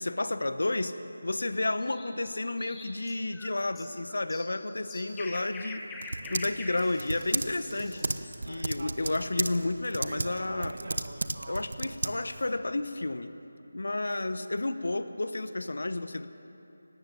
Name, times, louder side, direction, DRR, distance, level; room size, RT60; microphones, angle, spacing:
voice 1, 0.0-10.8 11.5-13.3 13.7-16.3, left 2 dB, 65° left, 11 dB, 1.1 m, -32 dB
sound 1, 1.8-8.4, left 3 dB, 10° left, 1.2 m, -45 dB
Typing, 5.1-12.5, right 2 dB, 60° right, 1.0 m, -35 dB
18.0 x 16.0 x 9.1 m, 2.9 s
figure-of-eight pair, 160°, 0 cm